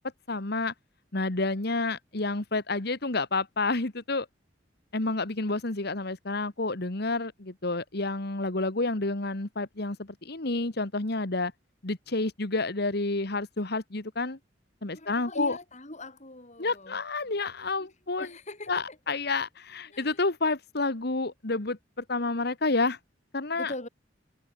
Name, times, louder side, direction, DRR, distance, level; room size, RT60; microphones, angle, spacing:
voice 1, 0.3-0.7 1.1-4.3 4.9-11.5 11.8-14.4 14.8-15.6 16.6-18.3 18.7-23.0 23.3-23.7, left 3 dB, 60° left, 1.8 m, -29 dB
voice 2, 14.9-17.0 17.8-17.9 18.2-19.1 19.9-20.2 23.5-23.9, left 1 dB, 40° left, 6.3 m, -41 dB
head